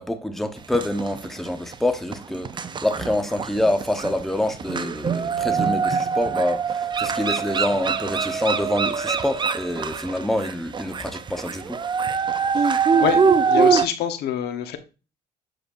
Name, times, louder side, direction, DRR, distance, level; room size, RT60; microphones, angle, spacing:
voice 1, 0.0-11.8, left 1 dB, ahead, 0.9 m, -26 dB
sound 1, 0.7-1.8 2.1-13.9, right 6 dB, 25° right, 0.5 m, -23 dB
voice 2, 12.6-14.8, left 9 dB, 75° left, 1.1 m, -26 dB
7.8 x 6.5 x 2.6 m
cardioid pair, 110°, 17 cm